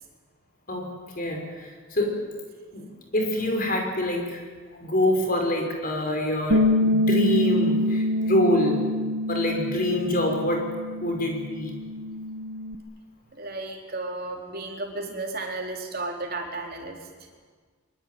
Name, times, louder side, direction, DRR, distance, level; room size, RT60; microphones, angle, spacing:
voice 1, 3.1-4.4 4.8-8.8 9.3-10.6 11.0-11.7, left 1 dB, 40° left, 2 dB, 5.6 m, -25 dB
Bass guitar, 6.5-12.8, left 1 dB, 65° right, 1.3 m, -26 dB
voice 2, 13.3-17.1, right 2 dB, 45° right, 2 dB, 4.0 m, -34 dB
24.0 x 23.0 x 9.5 m, 1.5 s
head